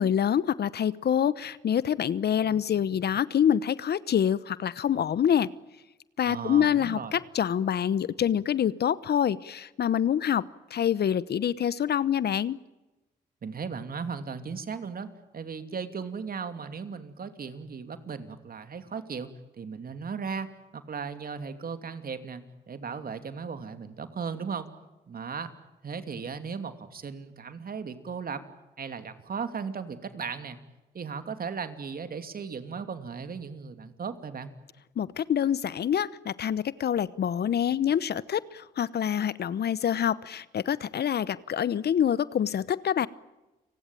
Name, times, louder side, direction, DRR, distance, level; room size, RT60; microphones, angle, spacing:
voice 1, 0.0-5.5 6.2-10.4 10.7-12.6 35.0-43.1, left 9 dB, 60° left, 18 dB, 1.0 m, -26 dB
voice 2, 6.2-7.1 13.4-15.1 15.3-19.3 19.6-24.7 25.1-25.5 25.8-28.4 28.8-30.6 30.9-34.5, right 5 dB, 50° right, 9 dB, 2.8 m, -36 dB
29.5 x 18.5 x 9.1 m, 1.1 s
supercardioid pair, 60°, 19 cm